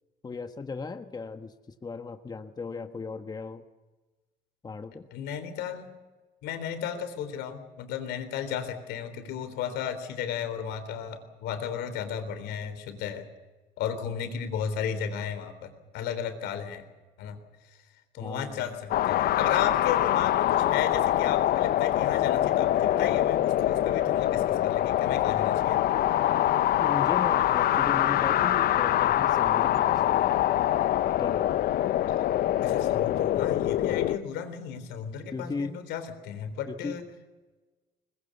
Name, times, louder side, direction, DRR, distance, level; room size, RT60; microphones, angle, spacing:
voice 1, 0.2-1.5 1.8-3.6 4.6-5.1 18.2-18.7 26.8-30.4 31.2-31.7 35.3-35.8 36.7-37.0, left 4 dB, 25° left, 7 dB, 1.3 m, -36 dB
voice 2, 5.1-5.9 6.4-13.3 13.8-16.9 17.2-17.4 17.6-17.8 18.1-25.8 32.6-37.1, left 8 dB, 85° left, 9 dB, 3.6 m, -34 dB
sound 1, 18.9-34.2, left 13 dB, 65° left, 0.7 m, -24 dB
21.0 x 21.0 x 8.2 m, 1.2 s
cardioid pair, 110°, 17 cm